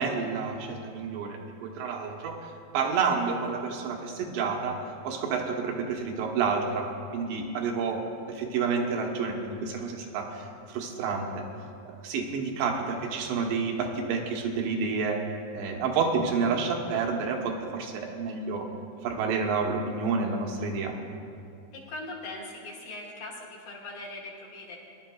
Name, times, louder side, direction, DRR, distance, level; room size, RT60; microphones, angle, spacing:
voice 1, 0.0-2.4 2.7-4.8 5.0-10.4 10.7-11.4 11.9-15.2 15.5-18.7 19.0-20.9, right 5 dB, 80° right, 1 dB, 3.1 m, -29 dB
voice 2, 21.7-24.8, left 2 dB, 65° left, -4 dB, 2.7 m, -40 dB
21.0 x 11.0 x 2.3 m, 2.5 s
omnidirectional pair, 5.0 m